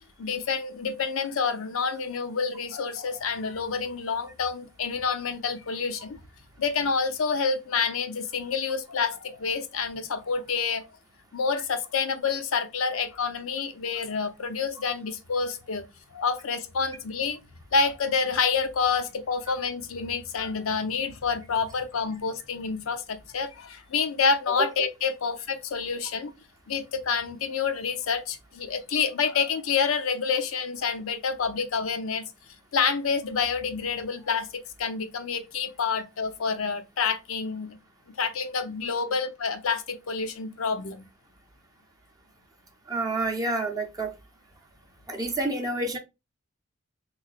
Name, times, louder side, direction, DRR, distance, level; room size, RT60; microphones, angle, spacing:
voice 1, 0.2-6.2 6.6-10.8 11.3-15.8 16.1-17.4 17.7-26.3 26.7-32.2 32.7-37.8 38.2-41.1, left 5 dB, 65° left, 0.6 m, -28 dB
voice 2, 42.9-44.1 45.1-46.0, right 2 dB, 15° right, 0.6 m, -28 dB
3.6 x 3.1 x 2.3 m
head